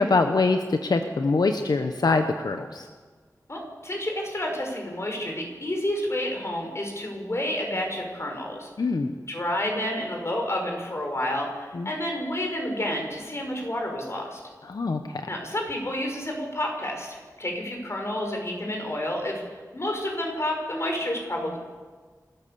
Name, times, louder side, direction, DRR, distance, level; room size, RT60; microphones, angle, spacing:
voice 1, 0.0-2.9 8.8-9.1 11.7-11.9 14.7-15.2, left 3 dB, 90° left, 6 dB, 1.0 m, -24 dB
voice 2, 3.5-8.7 9.3-14.4 15.3-19.4 19.7-21.6, left 1 dB, 45° left, 2 dB, 5.5 m, -30 dB
27.0 x 14.0 x 7.0 m, 1.5 s
wide cardioid pair, 70°, 7 cm